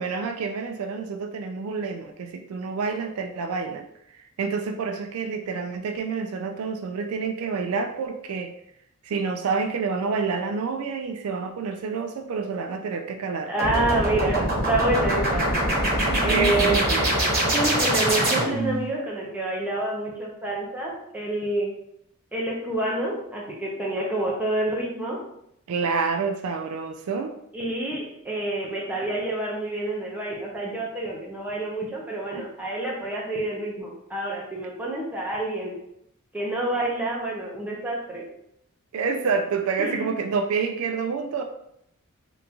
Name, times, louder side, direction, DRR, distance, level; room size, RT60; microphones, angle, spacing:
voice 1, 0.0-3.9 4.1-8.5 9.0-13.5 16.1-17.1 25.7-27.4 32.3-32.4 38.9-41.4, right 5 dB, 75° right, 6 dB, 0.3 m, -28 dB
voice 2, 13.5-15.5 16.2-16.8 17.2-21.7 22.3-25.2 27.5-35.7 36.3-38.3 39.8-40.1, right 1 dB, 5° right, -4 dB, 0.7 m, -28 dB
sound 1, 13.6-18.8, right 1 dB, 45° right, 1.1 m, -23 dB
3.4 x 2.6 x 2.8 m, 0.74 s
head